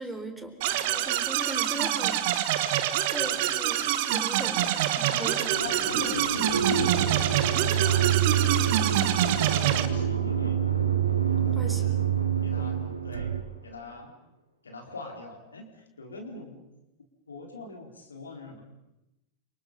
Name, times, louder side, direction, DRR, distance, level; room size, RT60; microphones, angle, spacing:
voice 1, 0.0-2.3 2.9-6.0 11.5-12.0, right 1 dB, 5° right, 5 dB, 4.3 m, -39 dB
sound 1, 0.6-9.9, right 12 dB, 50° right, 1.7 m, -26 dB
voice 2, 5.6-7.0 7.7-10.6 11.3-12.0 12.4-13.3 13.6-14.1 14.6-16.6 17.3-18.6, left 3 dB, 75° left, 2 dB, 4.5 m, -40 dB
sound 2, 5.6-13.9, right 1 dB, 85° right, 3.8 m, -37 dB
sound 3, 6.5-13.4, right 11 dB, 70° right, 1.4 m, -27 dB
29.5 x 27.0 x 5.5 m, 0.93 s
figure-of-eight pair, 90°, 0 cm